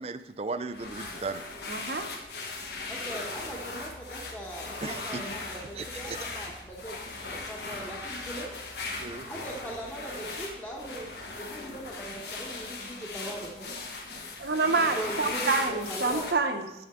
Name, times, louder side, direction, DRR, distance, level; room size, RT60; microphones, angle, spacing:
voice 1, 0.0-1.4 4.8-6.2 9.0-9.3, right 3 dB, 35° right, 12 dB, 0.4 m, -37 dB
sound 1, 0.7-16.3, left 3 dB, 65° left, 1.2 m, -38 dB
voice 2, 1.7-2.1 14.4-16.7, right 3 dB, 60° right, 6 dB, 0.8 m, -27 dB
voice 3, 2.9-7.0 7.2-8.6 9.2-11.1 11.4-13.7 15.0-16.2, right 1 dB, 10° left, -4 dB, 1.0 m, -40 dB
10.5 x 7.8 x 3.6 m, 0.97 s
head